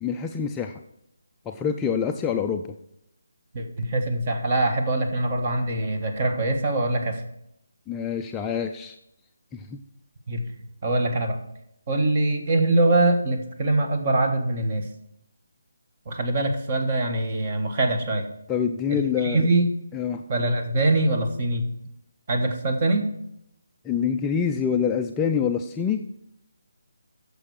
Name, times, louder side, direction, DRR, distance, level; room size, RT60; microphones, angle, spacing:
voice 1, 0.0-0.8 1.5-2.8 7.9-9.0 9.5-9.8 18.5-19.5 19.9-20.2 23.8-26.0, left 7 dB, 10° left, 3 dB, 0.4 m, -26 dB
voice 2, 3.5-7.2 10.3-10.4 10.8-11.4 11.9-14.8 16.1-18.3 18.9-19.7 20.3-21.6 22.3-23.0, right 2 dB, 30° right, 5 dB, 1.4 m, -23 dB
9.9 x 6.8 x 4.8 m, 0.79 s
hypercardioid pair, 165°, 0 cm